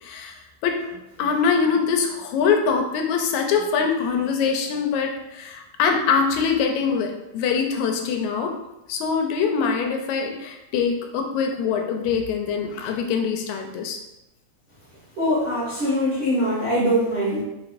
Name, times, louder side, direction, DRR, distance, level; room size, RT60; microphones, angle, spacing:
voice 1, 0.0-8.5 8.9-14.0, left 6 dB, 85° left, 3 dB, 1.9 m, -23 dB
voice 2, 15.2-17.4, equal, 45° right, -10 dB, 0.8 m, -22 dB
4.8 x 4.0 x 2.5 m, 0.93 s
omnidirectional pair, 3.3 m